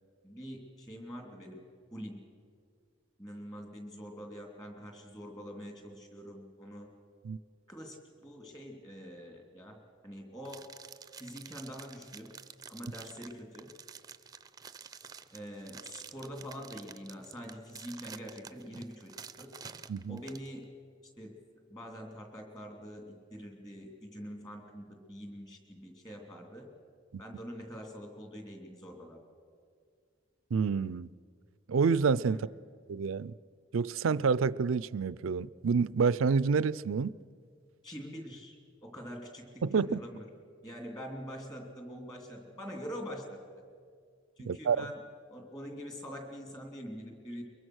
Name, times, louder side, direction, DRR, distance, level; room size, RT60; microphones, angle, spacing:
voice 1, 0.2-1.6 1.9-2.2 3.2-6.9 7.7-9.8 10.0-10.7 11.2-12.3 12.7-13.7 15.3-19.5 20.1-20.7 21.2-21.4 21.7-26.7 27.2-29.2 32.3-32.5 37.8-40.3 40.6-43.4 44.4-45.0 45.3-47.4, equal, 20° left, 3.1 m, -45 dB
sound 1, 10.4-20.5, right 6 dB, 20° right, 0.6 m, -49 dB
voice 2, 19.9-20.2 30.5-31.1 31.7-32.5 32.9-33.3 33.7-37.1 39.6-40.0 44.5-44.9, right 5 dB, 85° right, 0.4 m, -28 dB
23.0 x 22.5 x 6.3 m
head